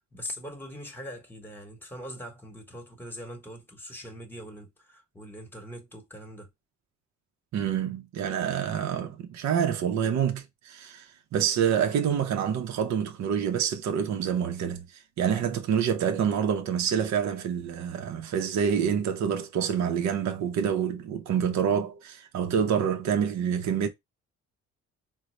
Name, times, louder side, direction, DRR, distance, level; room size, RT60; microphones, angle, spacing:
voice 1, 0.0-6.5 15.5-15.6, equal, 5° left, 1.0 m, -42 dB
voice 2, 7.5-14.8 15.2-23.9, right 8 dB, 65° right, 0.6 m, -27 dB
3.9 x 2.0 x 3.0 m
cardioid pair, 90°, 30 cm